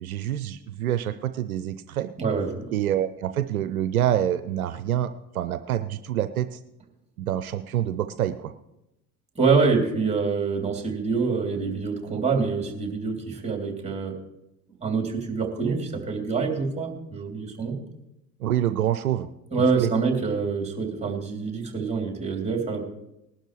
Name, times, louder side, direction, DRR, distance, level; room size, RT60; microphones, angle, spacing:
voice 1, 0.0-2.1 2.7-6.6 7.2-8.5 18.4-19.3 19.6-19.9, right 11 dB, 75° right, 11 dB, 0.6 m, -26 dB
voice 2, 2.2-2.7 9.3-14.2 14.8-17.8 19.5-22.8, right 4 dB, 15° right, 1 dB, 3.3 m, -26 dB
19.5 x 12.0 x 3.2 m, 0.89 s
figure-of-eight pair, 75°, 43 cm